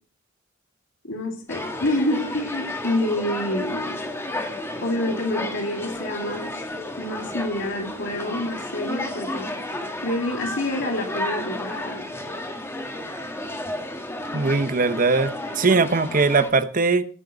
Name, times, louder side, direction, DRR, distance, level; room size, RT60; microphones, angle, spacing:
voice 1, 1.0-4.0 4.8-6.5 7.0-9.6 10.0-12.1, left 1 dB, 65° left, 1 dB, 2.8 m, -27 dB
sound 1, 1.5-16.5, left 1 dB, 15° left, 1.7 m, -32 dB
voice 2, 14.3-17.0, right 3 dB, 45° right, 11 dB, 1.0 m, -20 dB
17.5 x 6.7 x 5.1 m, 0.40 s
head